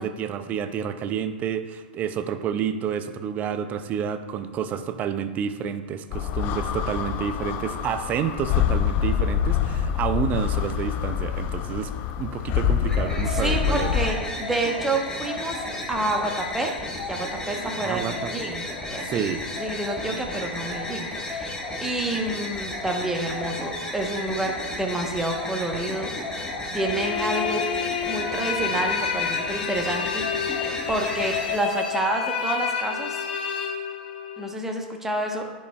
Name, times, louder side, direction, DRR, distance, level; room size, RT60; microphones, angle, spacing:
voice 1, 0.0-11.9 12.2-14.0 17.8-18.3 19.0-19.4, right 8 dB, 30° right, 10 dB, 0.5 m, -29 dB
sound 1, 6.1-14.1, left 9 dB, 40° left, 0.4 m, -26 dB
sound 2, 12.8-31.5, left 2 dB, 15° left, 1.3 m, -33 dB
voice 2, 13.3-16.7 17.1-19.2 19.6-26.1 26.7-27.6 28.1-30.2 30.9-33.2 34.4-35.4, right 2 dB, 5° right, 1 dB, 1.0 m, -28 dB
sound 3, 26.8-34.5, left 7 dB, 60° left, 0.9 m, -29 dB
10.5 x 5.3 x 2.3 m, 1.3 s
figure-of-eight pair, 105°, 5 cm